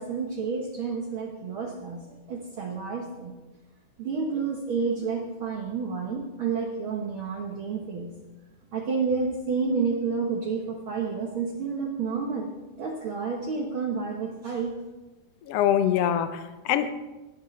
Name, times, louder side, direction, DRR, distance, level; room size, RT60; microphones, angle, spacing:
voice 1, 0.0-3.3 4.0-8.1 8.7-12.5 12.8-14.7, right 5 dB, 60° right, 1 dB, 1.4 m, -30 dB
voice 2, 15.4-16.9, left 10 dB, 80° left, 9 dB, 1.3 m, -24 dB
19.0 x 10.5 x 3.2 m, 1.1 s
omnidirectional pair, 3.7 m